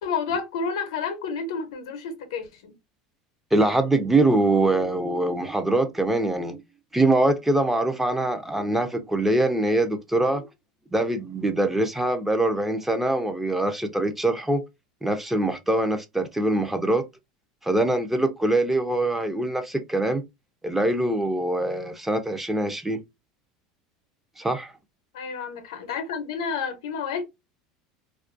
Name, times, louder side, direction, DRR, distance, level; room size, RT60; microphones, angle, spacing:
voice 1, 0.0-2.7 25.1-27.3, left 5 dB, 80° left, 0.7 m, -30 dB
voice 2, 3.5-6.6 6.9-10.5 10.9-14.6 15.0-17.0 17.6-20.2 20.6-23.0 24.4-24.7, right 2 dB, 10° right, 0.5 m, -23 dB
2.4 x 2.2 x 2.5 m
hypercardioid pair, 95°, 3 cm